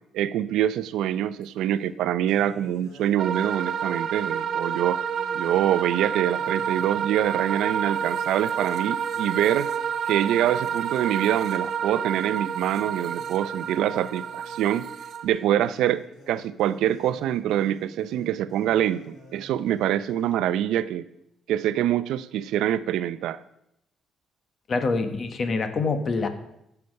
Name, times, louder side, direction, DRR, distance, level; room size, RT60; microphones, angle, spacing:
voice 1, 0.1-5.0 5.3-9.7 10.1-14.9 15.2-21.1 21.5-23.4, right 11 dB, 85° right, 14 dB, 0.5 m, -25 dB
sound 1, 1.4-1.5 2.3-8.3 8.6-8.8 9.1-20.3, left 1 dB, 75° left, 3.0 m, -49 dB
sound 2, 3.2-15.2, right 7 dB, 60° right, 1.3 m, -29 dB
voice 2, 24.7-26.3, left 4 dB, 45° left, 8 dB, 1.3 m, -25 dB
16.0 x 5.9 x 5.3 m, 0.80 s
cardioid pair, 90°, 0 cm